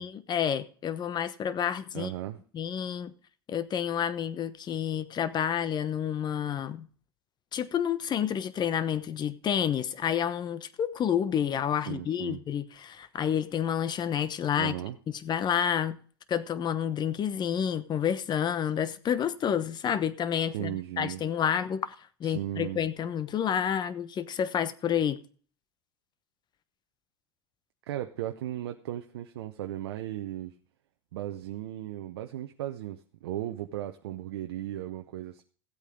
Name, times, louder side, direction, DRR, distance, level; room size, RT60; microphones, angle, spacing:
voice 1, 0.0-2.1 2.5-3.1 3.5-6.9 7.5-14.7 15.1-16.0 16.3-21.9 22.2-25.2, left 9 dB, 35° left, 1.0 m, -29 dB
voice 2, 1.9-2.4 11.9-12.4 14.6-15.0 20.5-21.2 22.2-22.8 27.9-30.5 31.1-35.4, right 13 dB, 75° right, 0.8 m, -36 dB
15.5 x 8.3 x 3.7 m
hypercardioid pair, 90°, 13 cm